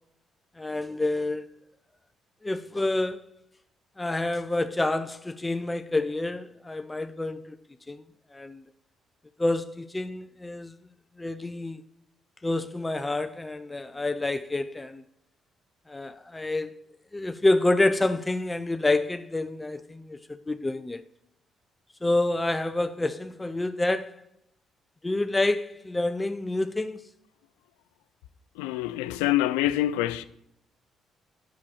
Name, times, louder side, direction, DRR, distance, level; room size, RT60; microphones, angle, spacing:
voice 1, 0.6-1.5 2.4-3.2 4.0-7.6 7.9-8.0 8.3-8.6 9.4-10.7 11.2-11.8 12.4-15.0 15.9-16.8 17.1-20.2 20.5-21.0 22.0-24.2 25.0-27.0, left 2 dB, 20° left, 0.6 m, -28 dB
voice 2, 28.6-30.2, left 14 dB, 90° left, 0.4 m, -26 dB
7.4 x 6.3 x 7.1 m
supercardioid pair, 55°, 0 cm